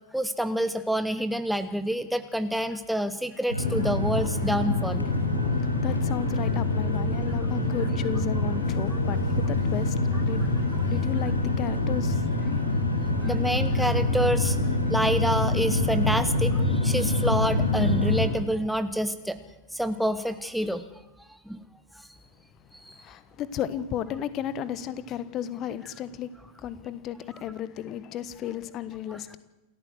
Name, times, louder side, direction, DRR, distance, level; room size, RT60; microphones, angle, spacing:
voice 1, 0.1-5.0 10.8-10.9 13.2-14.6 14.9-19.4 19.7-20.8 21.5-21.6 22.8-22.9 29.1-29.2, right 1 dB, ahead, 11 dB, 1.0 m, -27 dB
sound 1, 3.5-18.3, left 2 dB, 85° left, 6.0 m, -25 dB
voice 2, 5.8-12.2 23.0-26.3 26.6-29.4, left 10 dB, 35° left, 15 dB, 1.4 m, -34 dB
28.5 x 14.0 x 7.8 m, 1.1 s
figure-of-eight pair, 90°, 0 cm